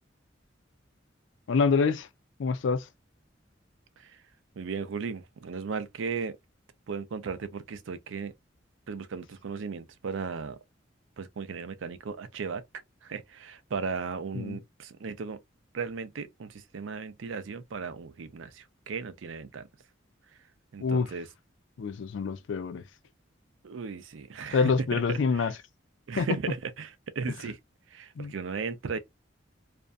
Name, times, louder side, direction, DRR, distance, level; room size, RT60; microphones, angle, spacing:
voice 1, 1.5-2.1 2.4-2.9 14.3-14.6 20.8-21.1 21.8-22.8 24.5-25.5 26.2-26.3 28.2-28.3, left 5 dB, 75° left, 0.4 m, -26 dB
voice 2, 4.5-6.4 6.9-8.3 8.9-10.6 11.2-12.6 13.0-15.4 15.7-19.7 20.3-20.4 20.7-21.3 23.6-25.5 26.1-27.6 27.9-29.0, right 5 dB, 90° right, 0.5 m, -36 dB
2.5 x 2.2 x 2.4 m
head